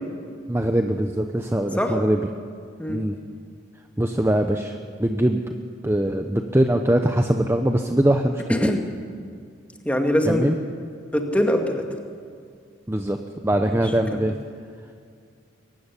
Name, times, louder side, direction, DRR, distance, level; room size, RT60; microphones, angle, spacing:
voice 1, 0.5-2.3 2.9-3.2 4.0-5.4 5.8-8.7 10.2-10.6 12.9-13.2 13.4-14.3, right 1 dB, 15° right, 5 dB, 0.8 m, -22 dB
voice 2, 9.9-10.5 11.1-11.9 13.7-13.8 14.1-14.2, left 1 dB, 5° left, 3 dB, 2.1 m, -22 dB
23.0 x 15.5 x 9.9 m, 2.2 s
head